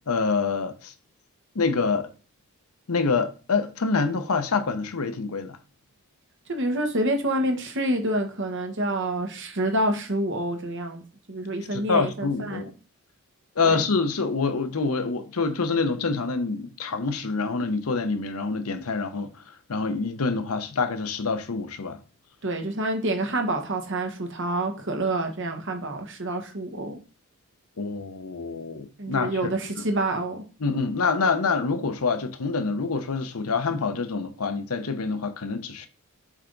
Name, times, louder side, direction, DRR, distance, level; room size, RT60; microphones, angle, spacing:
voice 1, 0.1-0.9 1.5-2.1 2.9-5.6 11.7-12.7 13.6-22.0 27.8-29.5 30.6-35.9, left 4 dB, 75° left, 0.8 m, -26 dB
voice 2, 6.5-11.0 11.3-12.7 13.6-13.8 22.4-27.0 29.0-30.4, right 1 dB, 55° right, 1.2 m, -27 dB
7.5 x 3.5 x 3.9 m
head